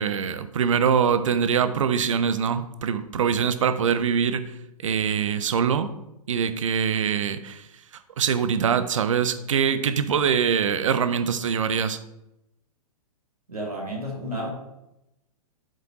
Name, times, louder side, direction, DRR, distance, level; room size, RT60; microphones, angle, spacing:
voice 1, 0.0-4.5 4.8-5.9 6.3-7.7 8.2-12.0, right 7 dB, 55° right, 11 dB, 0.6 m, -23 dB
voice 2, 13.5-14.5, equal, 80° right, -1 dB, 2.2 m, -31 dB
7.4 x 5.1 x 3.0 m, 0.88 s
figure-of-eight pair, 115°, 19 cm